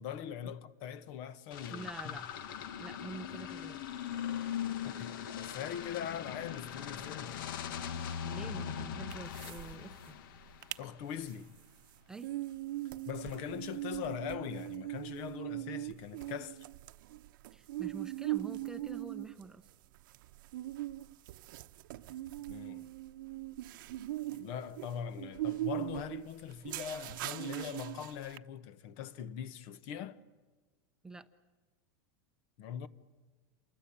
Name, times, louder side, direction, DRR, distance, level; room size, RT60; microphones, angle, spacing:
voice 1, 0.0-2.2 4.8-7.6 10.8-11.5 13.1-16.7 22.5-22.9 24.3-30.2 32.6-32.9, left 9 dB, 50° left, 1.2 m, -42 dB
sound 1, 1.5-11.0, left 9 dB, 75° left, 1.6 m, -40 dB
voice 2, 1.7-2.3 2.8-3.8 8.2-10.2 12.1-12.3 17.5-19.7 31.0-31.3, right 3 dB, 5° right, 0.8 m, -46 dB
sound 2, 9.1-9.7 10.0-10.1 10.4-10.8 11.2-28.4, right 16 dB, 70° right, 0.9 m, -40 dB
28.5 x 24.0 x 8.7 m
supercardioid pair, 160°, 11 cm